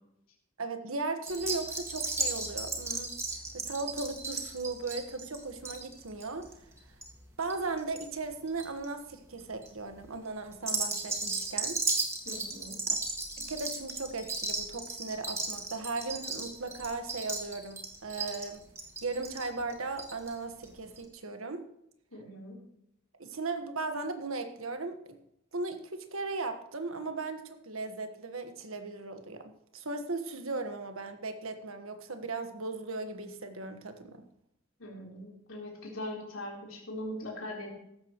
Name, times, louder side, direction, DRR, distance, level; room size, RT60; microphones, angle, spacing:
voice 1, 0.6-3.1 3.5-6.5 7.4-11.8 13.4-18.6 19.0-21.6 23.2-25.2 25.5-34.2, right 3 dB, 70° right, 7 dB, 1.5 m, -37 dB
sound 1, 1.3-8.0 8.3-8.8 9.4-9.7 10.5-20.3 20.6-20.7 21.0-21.1, right 3 dB, 15° right, 1.8 m, -35 dB
voice 2, 12.3-12.8 22.1-22.6 34.8-37.7, left 1 dB, 70° left, -2 dB, 3.8 m, -41 dB
15.0 x 12.5 x 3.1 m, 0.77 s
head